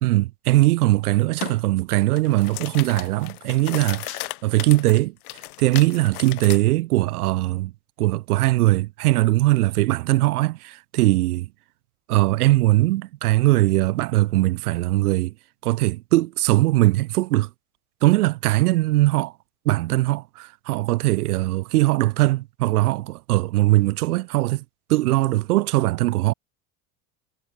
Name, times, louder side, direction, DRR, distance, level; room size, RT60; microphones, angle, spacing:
voice 1, 0.0-5.1 5.6-7.7 8.0-11.5 12.1-15.3 15.6-17.5 18.0-19.3 19.6-24.6 24.9-26.3, right 18 dB, 85° right, 1.5 m, -20 dB
sound 1, 1.4-1.6 2.0-6.6, left 20 dB, 80° left, 2.2 m, -35 dB
supercardioid pair, 100°, 44 cm